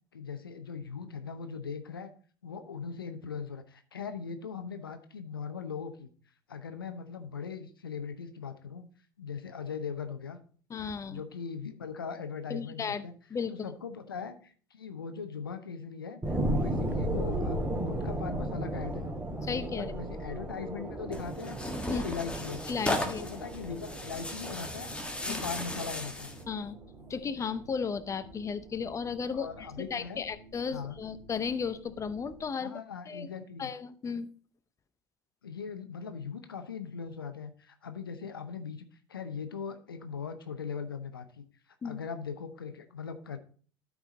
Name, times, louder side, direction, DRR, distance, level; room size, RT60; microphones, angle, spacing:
voice 1, 0.1-2.1 2.4-6.1 6.5-8.9 9.2-10.4 11.1-13.1 13.5-19.1 19.7-21.6 21.8-22.6 22.9-24.9 25.2-26.4 29.3-30.2 30.7-31.0 32.6-33.7 35.4-41.4 41.8-43.4, left 6 dB, 85° left, 9 dB, 0.7 m, -40 dB
voice 2, 10.7-11.2 12.5-13.5 19.4-19.9 21.9-22.0 22.7-23.2 25.3-25.4 26.5-26.8 27.1-32.8 33.1-33.3 33.6-34.3 41.8-42.0, left 6 dB, 25° left, 13 dB, 0.7 m, -35 dB
sound 1, 16.2-27.2 27.7-27.8, right 1 dB, 20° right, 2.9 m, -35 dB
sound 2, 20.8-32.5, right 2 dB, 55° right, 1.9 m, -53 dB
Tearing, 21.1-26.4, left 1 dB, 10° left, 1.6 m, -36 dB
12.5 x 4.8 x 3.9 m, 0.43 s
figure-of-eight pair, 65°, 12 cm